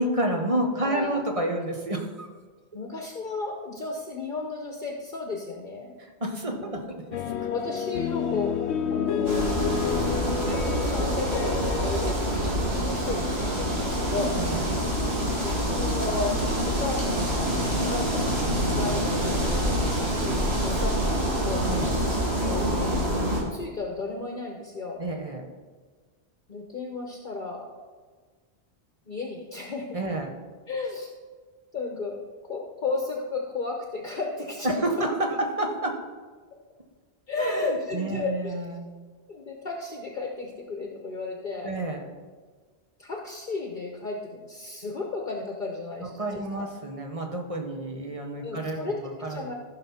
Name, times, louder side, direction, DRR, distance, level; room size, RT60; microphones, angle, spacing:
voice 1, 0.0-2.3 6.0-6.8 7.1-7.2 14.4-14.6 21.6-22.0 25.0-25.5 29.9-30.3 34.6-36.0 37.4-38.8 41.6-42.0 46.0-49.5, right 1 dB, 30° right, 2 dB, 1.3 m, -29 dB
voice 2, 0.8-1.2 2.7-5.9 6.5-6.9 7.5-9.6 9.8-14.4 15.4-19.7 20.2-21.7 22.4-23.0 23.5-25.0 26.5-27.7 29.1-30.0 30.7-31.1 31.7-32.2 32.5-35.1 37.3-38.5 39.3-41.7 43.0-46.7 48.4-49.5, left 3 dB, 50° left, 1 dB, 1.1 m, -34 dB
sound 1, 7.1-12.1, left 7 dB, 80° left, 0.9 m, -29 dB
sound 2, 9.3-23.4, equal, 65° right, 2.7 m, -26 dB
14.5 x 6.0 x 4.3 m, 1.5 s
omnidirectional pair, 1.1 m